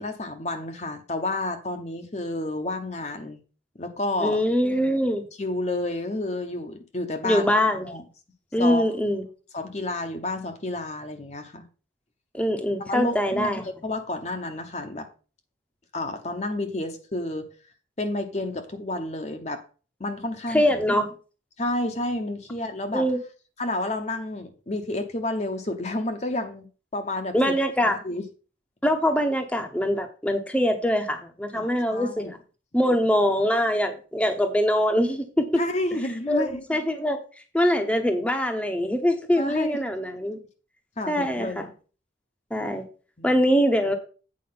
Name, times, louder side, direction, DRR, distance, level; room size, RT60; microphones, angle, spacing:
voice 1, 0.0-3.4 3.8-4.4 5.4-7.4 7.8-8.0 8.6-8.9 9.5-11.6 12.9-15.1 15.9-17.5 18.0-19.6 20.0-20.6 21.6-23.1 23.6-26.7 26.9-27.3 28.0-28.2 31.5-32.3 35.5-36.6 39.4-39.8 41.0-41.7 43.2-43.3, left 2 dB, 35° left, 0.9 m, -30 dB
voice 2, 4.2-5.2 7.2-7.9 8.5-9.2 12.3-13.6 20.5-21.1 22.9-23.2 27.3-28.0 28.8-32.4 32.7-35.5 36.3-37.2 37.5-40.4 41.1-41.7 42.5-42.8 43.2-43.9, equal, 5° left, 0.9 m, -23 dB
8.6 x 4.9 x 5.6 m
head